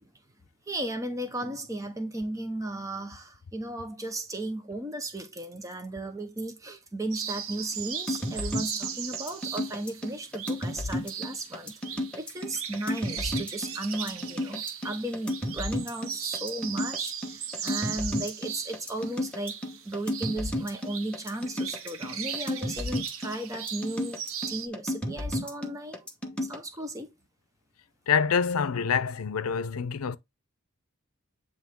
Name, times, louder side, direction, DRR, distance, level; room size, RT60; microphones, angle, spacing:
voice 1, 0.7-19.6 19.8-24.2 24.5-26.0 26.4-27.1, right 1 dB, 15° right, 0.8 m, -35 dB
sound 1, 7.1-24.7, right 8 dB, 70° right, 0.8 m, -38 dB
sound 2, 8.1-26.6, left 1 dB, 5° left, 1.0 m, -33 dB
voice 2, 28.1-30.2, left 6 dB, 90° left, 0.6 m, -26 dB
9.4 x 3.2 x 3.6 m
head